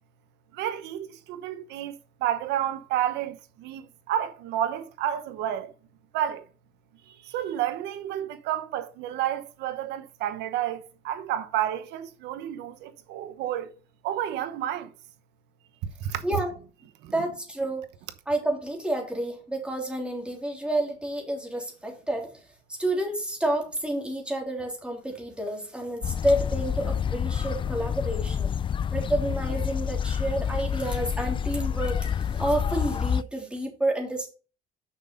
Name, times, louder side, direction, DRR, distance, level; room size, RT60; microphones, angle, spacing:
voice 1, 0.5-1.9 2.2-5.7 6.1-6.5 7.1-13.7 14.0-14.9 15.8-16.2 17.0-17.1, right 11 dB, 90° right, 1.0 m, -30 dB
voice 2, 17.1-17.8 18.3-22.3 22.7-28.5 28.9-32.1 32.3-34.3, right 1 dB, 5° right, 3.2 m, -29 dB
sound 1, 26.0-33.2, left 7 dB, 30° left, 0.3 m, -28 dB
6.4 x 6.1 x 5.3 m
cardioid pair, 110°, 17 cm